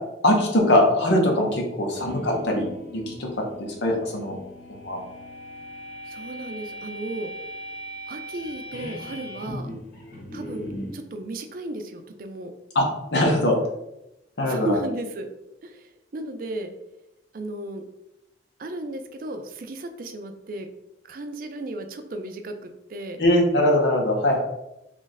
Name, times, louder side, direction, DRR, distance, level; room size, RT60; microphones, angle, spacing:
voice 1, 0.2-2.7 2.9-3.3 3.6-4.4 4.7-5.0 12.7-13.5 14.4-14.8 23.2-24.4, left 1 dB, 75° left, 0 dB, 0.8 m, -21 dB
sound 1, 1.9-11.0, equal, 55° left, 1.0 m, -39 dB
voice 2, 2.0-2.3 3.9-4.0 6.1-7.3 8.1-9.7 10.3-12.5 14.4-15.3 15.6-16.7 17.3-17.8 18.6-20.7 21.1-23.2, right 1 dB, 50° right, 6 dB, 0.4 m, -34 dB
3.1 x 2.5 x 3.9 m, 0.89 s
head